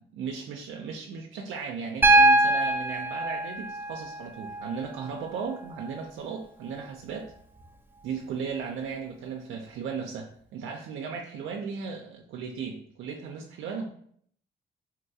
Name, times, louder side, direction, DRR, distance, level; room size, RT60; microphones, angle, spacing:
voice 1, 0.1-7.3 8.0-13.8, right 6 dB, 80° right, 1 dB, 0.4 m, -36 dB
Piano, 2.0-6.0 7.6-7.7, right 2 dB, 10° right, 0.4 m, -24 dB
3.8 x 2.2 x 2.7 m, 0.63 s
cardioid pair, 90°, 20 cm